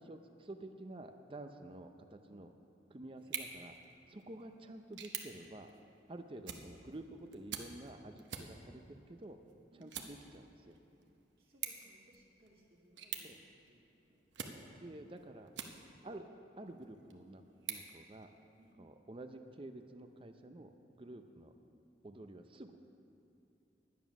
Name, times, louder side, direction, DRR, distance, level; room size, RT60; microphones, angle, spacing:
voice 1, 0.0-2.5 2.9-3.7 4.1-5.7 6.1-9.4 9.8-10.8 13.2-13.4 14.8-15.5 16.0-16.3 16.6-17.4 17.7-18.3 18.8-21.5 22.0-22.8, right 1 dB, 30° right, 7 dB, 0.6 m, -50 dB
sound 1, 3.2-16.2 16.7-18.7, right 8 dB, 90° right, 0.9 m, -49 dB
voice 2, 11.4-15.0 18.6-18.8 21.1-21.3, right 1 dB, 55° right, -5 dB, 1.8 m, -67 dB
11.0 x 9.4 x 6.0 m, 2.8 s
head